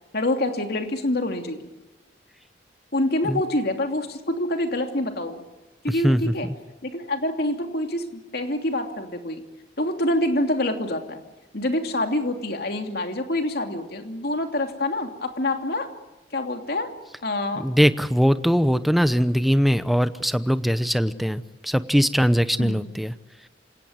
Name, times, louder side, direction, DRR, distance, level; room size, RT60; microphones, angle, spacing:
voice 1, 0.1-1.6 2.9-5.4 5.8-6.5 6.8-9.4 9.8-11.2 11.5-15.9 16.3-16.9 17.2-17.7 22.6-22.8, left 1 dB, 55° left, 4 dB, 2.9 m, -26 dB
voice 2, 5.9-6.6 17.5-23.1, equal, ahead, 12 dB, 0.8 m, -21 dB
27.5 x 18.0 x 9.6 m, 1.1 s
head